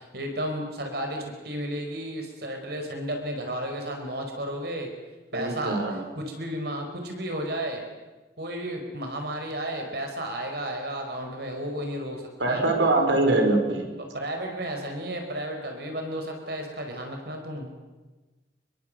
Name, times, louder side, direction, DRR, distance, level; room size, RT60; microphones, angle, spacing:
voice 1, 0.0-4.9 5.3-5.8 6.2-7.8 8.4-12.6 14.1-17.7, right 1 dB, 60° right, 3 dB, 5.2 m, -33 dB
voice 2, 5.3-6.1 12.4-13.9, right 2 dB, 85° right, 3 dB, 5.2 m, -23 dB
26.5 x 22.5 x 7.9 m, 1.2 s
head